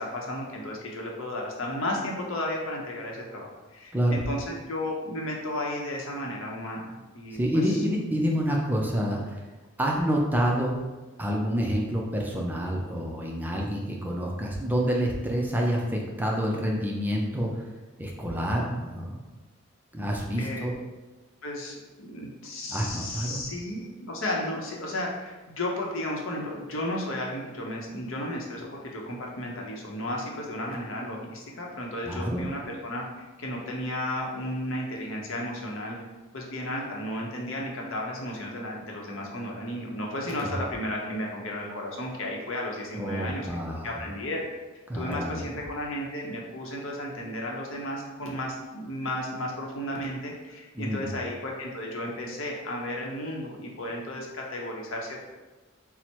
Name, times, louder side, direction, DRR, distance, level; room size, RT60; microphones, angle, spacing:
voice 1, 0.0-7.8 20.4-20.7 21.4-33.0 33.4-36.0 36.3-44.4 44.9-55.3, left 1 dB, 65° left, -1 dB, 0.7 m, -34 dB
voice 2, 7.3-9.4 9.8-10.9 11.2-17.6 18.0-19.2 19.9-20.7 22.7-23.4 32.0-32.5 40.4-40.6 43.0-44.1 44.9-45.6 50.7-51.1, equal, 10° right, -1 dB, 0.4 m, -28 dB
4.3 x 2.1 x 4.3 m, 1.2 s
head